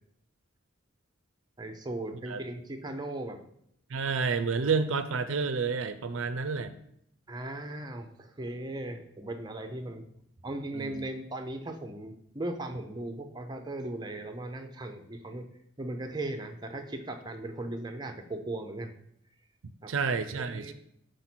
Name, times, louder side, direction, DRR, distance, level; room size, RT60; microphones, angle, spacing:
voice 1, 1.6-3.4 4.6-4.7 7.3-10.1 10.4-15.5 15.8-18.9 19.8-19.9 20.3-20.7, right 1 dB, 20° right, 6 dB, 0.5 m, -38 dB
voice 2, 3.9-6.8 10.7-11.1 19.9-20.7, right 5 dB, 70° right, 10 dB, 0.5 m, -30 dB
5.1 x 4.1 x 5.9 m, 0.73 s
head